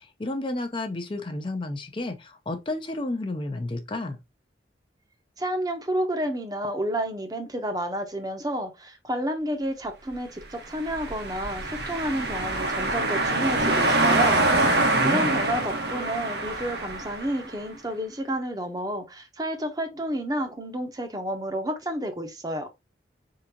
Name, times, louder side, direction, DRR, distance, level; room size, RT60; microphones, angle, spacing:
voice 1, 0.0-4.2 14.7-15.3, left 2 dB, 30° left, 0.5 m, -32 dB
voice 2, 5.4-14.4 15.0-22.7, equal, 20° right, 0.8 m, -30 dB
sound 1, 10.7-17.5, right 2 dB, 65° right, 1.1 m, -25 dB
4.7 x 3.8 x 2.8 m
head